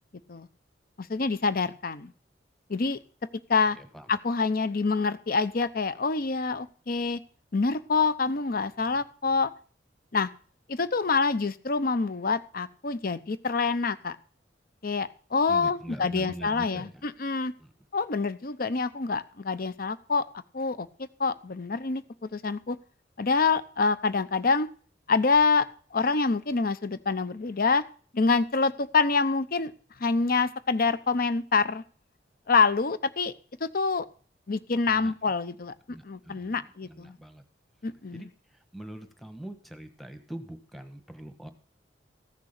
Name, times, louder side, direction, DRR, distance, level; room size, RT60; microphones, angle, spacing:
voice 1, 1.0-2.1 2.7-3.0 3.5-3.8 4.1-7.2 7.5-9.5 10.1-10.3 10.7-14.2 14.8-17.5 17.9-20.2 20.5-20.9 21.2-22.8 23.2-24.7 25.1-27.8 28.1-29.7 30.0-31.8 32.5-33.3 33.6-34.0 34.5-37.2 37.8-38.3, left 4 dB, 55° left, 15 dB, 0.8 m, -26 dB
voice 2, 3.7-4.1 15.5-17.0 17.6-17.7 34.9-35.1 35.9-37.4 38.1-38.3 38.7-41.5, right 1 dB, ahead, 8 dB, 1.4 m, -43 dB
15.0 x 6.7 x 6.6 m, 0.43 s
head